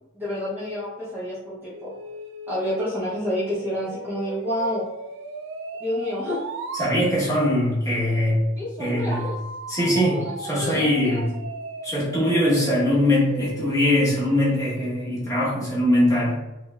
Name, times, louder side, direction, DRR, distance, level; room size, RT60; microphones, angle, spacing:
voice 1, 0.1-1.9 2.5-4.8 5.8-6.4 8.5-9.4 10.1-11.2, left 1 dB, 10° right, -10 dB, 0.6 m, -29 dB
sound 1, 1.7-6.9 9.1-15.0, right 2 dB, 60° right, 0.3 m, -37 dB
voice 2, 6.7-8.4 8.8-9.3 9.7-11.3 11.8-16.4, left 1 dB, 15° left, -8 dB, 1.0 m, -22 dB
3.2 x 3.1 x 2.3 m, 1.0 s
head